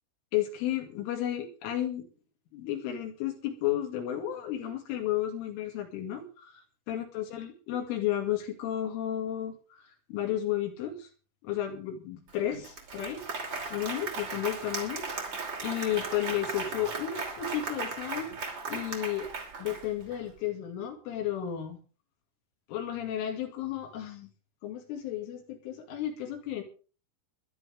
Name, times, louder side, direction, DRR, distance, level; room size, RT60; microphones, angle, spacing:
voice 1, 0.3-2.0 2.5-6.6 6.9-9.8 10.1-11.1 11.4-13.2 13.7-15.0 15.6-18.3 18.7-19.3 19.6-21.8 22.7-24.3 24.6-26.6, left 11 dB, 75° left, 4 dB, 4.6 m, -33 dB
Applause, 12.3-12.4 12.6-20.2, right 4 dB, 30° right, 2.6 m, -37 dB
23.0 x 12.0 x 3.5 m, 0.36 s
omnidirectional pair, 5.9 m